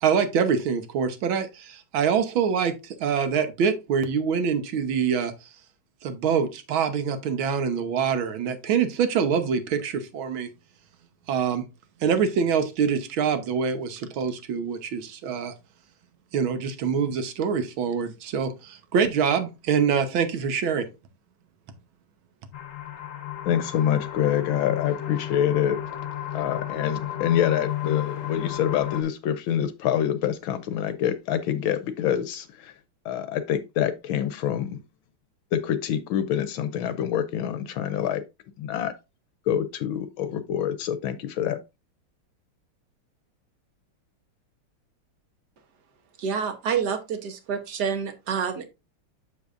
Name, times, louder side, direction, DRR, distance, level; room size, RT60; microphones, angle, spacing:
voice 1, 0.0-2.8 3.0-5.3 6.0-10.5 11.3-11.6 12.0-15.5 16.3-20.9, right 6 dB, 70° right, 1.8 m, -25 dB
sound 1, 22.5-29.0, left 12 dB, 50° left, 1.1 m, -32 dB
voice 2, 23.4-25.8 26.3-32.7 33.0-34.8 35.5-38.2 38.6-38.9 39.5-41.6, left 10 dB, 75° left, 1.3 m, -26 dB
voice 3, 46.2-48.7, right 6 dB, 55° right, 1.5 m, -28 dB
7.0 x 6.8 x 2.5 m
omnidirectional pair, 2.4 m